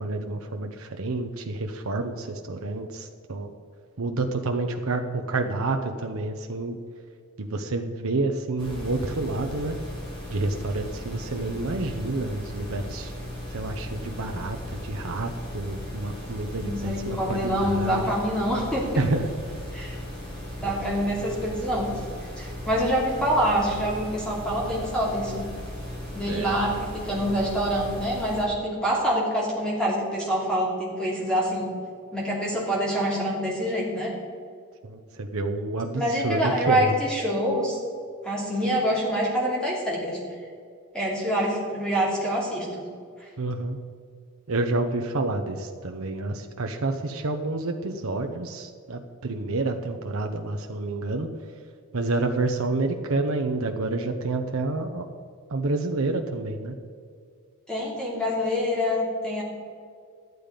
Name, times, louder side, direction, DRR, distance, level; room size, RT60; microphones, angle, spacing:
voice 1, 0.0-3.5 4.0-6.8 7.4-9.8 10.3-13.1 13.5-14.6 14.8-18.1 19.0-19.3 26.3-26.5 34.8-36.9 43.4-43.8 44.5-51.3 51.9-55.1 55.5-56.7, right 2 dB, 80° right, 4 dB, 0.8 m, -29 dB
sound 1, 8.6-28.4, equal, 25° left, 3.2 m, -37 dB
voice 2, 16.6-19.0 19.7-20.0 20.6-22.1 22.4-25.5 26.1-31.7 32.1-34.1 35.9-37.8 38.2-40.2 40.9-42.8 57.7-59.4, equal, 5° left, -5 dB, 2.7 m, -26 dB
12.0 x 9.4 x 5.1 m, 2.2 s
head